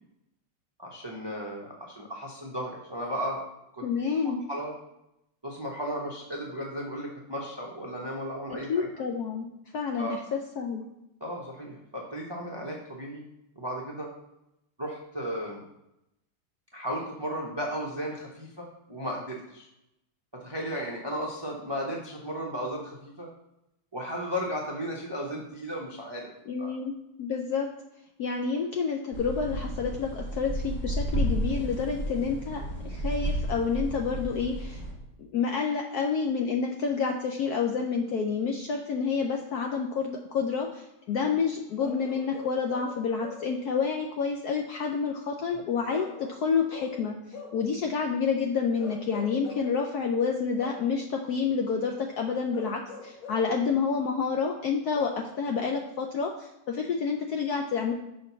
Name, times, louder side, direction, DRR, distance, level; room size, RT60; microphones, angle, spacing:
voice 1, 0.8-3.4 3.7-3.9 4.2-4.7 5.4-8.9 10.0-10.2 11.2-13.3 13.6-14.1 14.8-15.6 16.7-19.7 20.3-23.3 23.9-26.3 26.6-26.7, equal, 30° right, -1 dB, 0.4 m, -35 dB
voice 2, 3.8-4.4 8.7-9.5 9.7-10.8 26.5-27.7 28.2-34.8 35.2-47.2 47.5-57.9, left 5 dB, 70° left, 2 dB, 0.9 m, -29 dB
sound 1, 29.1-34.9, equal, 10° left, 0.9 m, -32 dB
Bark / Livestock farm animals working animals, 41.8-43.6 45.9-47.7 48.8-49.8 50.6-51.0 52.5-53.6 54.9-55.3, left 5 dB, 90° left, 1.9 m, -43 dB
6.2 x 4.5 x 5.5 m, 0.86 s
omnidirectional pair, 2.2 m